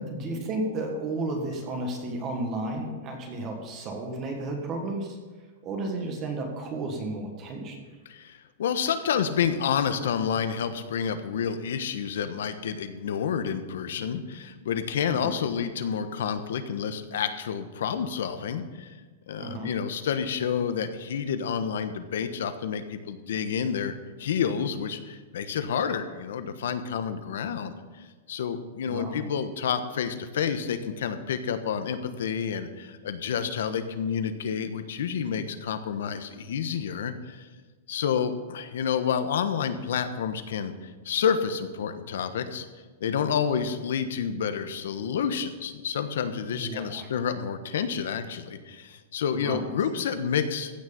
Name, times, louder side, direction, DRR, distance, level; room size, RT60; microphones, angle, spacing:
voice 1, 0.0-5.2 5.6-7.9 15.1-15.4 19.4-19.7 28.9-29.2 46.5-47.1 49.3-49.7, right 2 dB, 25° right, 2 dB, 1.5 m, -33 dB
voice 2, 8.1-18.9 19.3-27.8 28.3-37.5 37.9-42.7 43.0-50.7, left 7 dB, 70° left, 10 dB, 1.2 m, -29 dB
15.5 x 6.4 x 7.0 m, 1.3 s
supercardioid pair, 175°, 0 cm